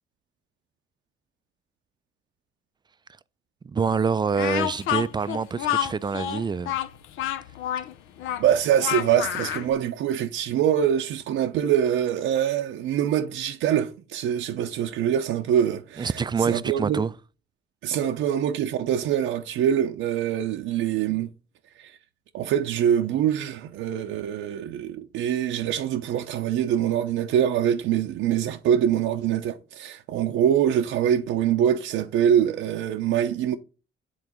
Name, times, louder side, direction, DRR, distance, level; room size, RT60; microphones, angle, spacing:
voice 1, 3.6-6.8 16.0-17.1, right 5 dB, 20° right, 0.3 m, -26 dB
Speech, 4.3-9.7, left 11 dB, 90° left, 0.6 m, -28 dB
voice 2, 8.4-16.1 16.4-17.0 17.8-21.3 21.8-21.9 22.3-33.5, right 9 dB, 85° right, 0.6 m, -24 dB
8.7 x 3.8 x 3.0 m
cardioid pair, 90°, 20 cm